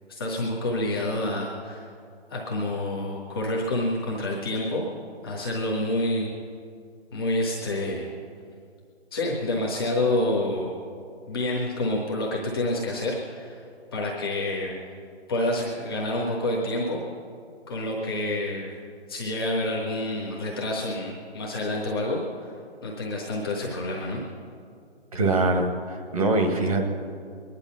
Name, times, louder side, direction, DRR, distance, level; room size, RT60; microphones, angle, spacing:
voice 1, 0.1-1.9 2.3-4.8 5.2-6.3 7.1-8.1 9.1-10.8 11.3-13.6 13.9-14.8 15.3-17.0 17.7-18.7 19.1-22.2 22.8-24.2, left 1 dB, 5° left, -4 dB, 0.7 m, -28 dB
voice 2, 25.1-26.8, right 2 dB, 30° right, 2 dB, 1.7 m, -23 dB
22.5 x 10.5 x 5.9 m, 2.3 s
hypercardioid pair, 170°, 34 cm